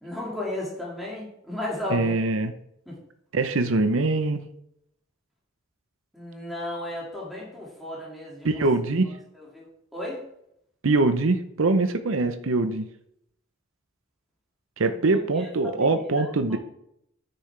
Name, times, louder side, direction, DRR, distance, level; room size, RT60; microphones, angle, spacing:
voice 1, 0.0-2.1 2.9-3.0 6.1-8.7 9.4-10.2 14.8-15.0 15.4-15.8 16.2-16.6, left 1 dB, ahead, -5 dB, 2.2 m, -34 dB
voice 2, 1.9-2.5 3.3-4.4 8.4-9.1 10.8-12.9 14.8-16.6, right 3 dB, 70° right, 8 dB, 0.7 m, -23 dB
9.5 x 6.9 x 3.3 m, 0.74 s
head